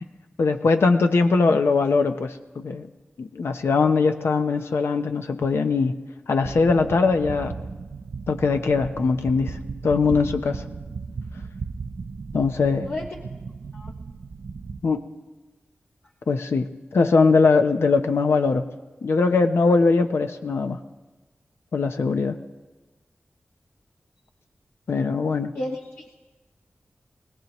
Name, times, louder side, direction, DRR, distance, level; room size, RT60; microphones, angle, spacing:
voice 1, 0.4-2.9 3.2-5.9 6.3-7.6 8.3-10.6 12.3-12.9 14.8-15.0 16.3-16.7 16.9-18.6 19.0-20.8 21.7-22.4 24.9-25.5, left 4 dB, 85° left, 7 dB, 0.7 m, -21 dB
sound 1, 6.4-14.8, right 4 dB, 85° right, 0.7 m, -36 dB
voice 2, 25.5-26.2, left 1 dB, 60° left, -2 dB, 1.4 m, -32 dB
24.0 x 17.5 x 3.0 m, 1.2 s
wide cardioid pair, 65°, 4 cm